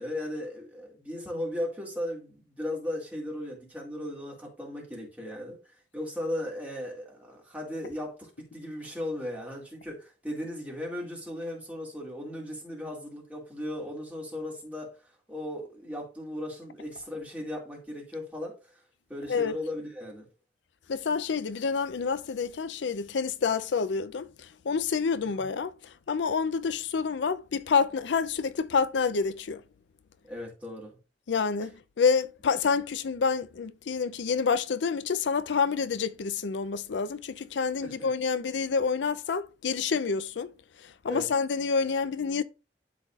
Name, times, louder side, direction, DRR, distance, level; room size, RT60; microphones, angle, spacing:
voice 1, 0.0-5.6 5.9-18.7 19.1-20.3 25.2-25.4 30.3-31.0 37.8-38.1 41.1-41.3, left 1 dB, 10° right, 2.2 m, -37 dB
voice 2, 20.9-24.3 24.7-25.7 26.1-29.6 31.3-40.5 41.0-42.4, left 5 dB, 90° left, 0.5 m, -28 dB
12.0 x 4.0 x 2.4 m
head